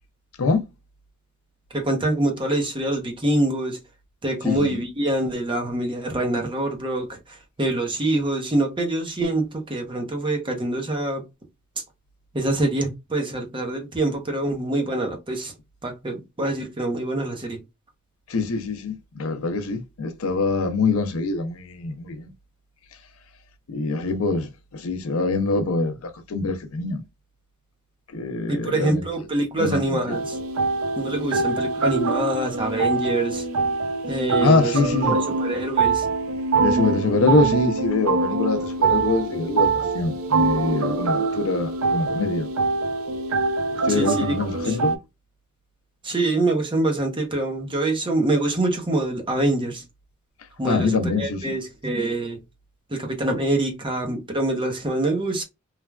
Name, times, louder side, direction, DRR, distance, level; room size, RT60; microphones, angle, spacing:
voice 1, 1.7-3.8 4.2-11.2 12.3-15.5 15.8-17.6 28.5-30.4 31.0-33.5 34.1-34.7 35.0-36.1 43.9-44.3 44.6-44.8 46.0-49.8 50.6-52.4 52.9-55.4, right 2 dB, 25° right, 0.7 m, -25 dB
voice 2, 4.4-4.8 18.3-22.3 23.7-27.0 28.1-29.3 29.5-30.2 31.3-31.4 34.4-35.2 36.6-42.5 43.7-45.0 50.6-51.5, left 3 dB, 85° left, 0.5 m, -24 dB
sound 1, 30.1-45.0, right 4 dB, 75° right, 0.5 m, -24 dB
3.2 x 2.2 x 2.3 m
head